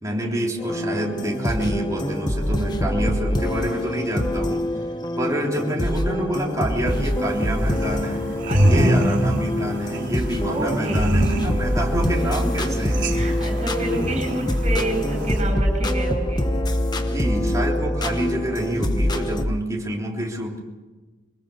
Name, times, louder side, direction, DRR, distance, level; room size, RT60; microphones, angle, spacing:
voice 1, 0.0-4.6 5.2-8.2 8.6-13.1 13.9-14.2 17.1-20.6, right 1 dB, 15° right, -1 dB, 3.4 m, -27 dB
sound 1, 0.6-19.4, left 1 dB, 20° left, 1.2 m, -25 dB
sound 2, 6.8-15.4, right 1 dB, 60° right, 3.8 m, -26 dB
voice 2, 8.5-9.3 10.5-11.1 12.4-12.5 13.1-16.5, right 1 dB, 35° right, 4 dB, 7.9 m, -29 dB
24.0 x 20.0 x 6.9 m, 1.3 s
head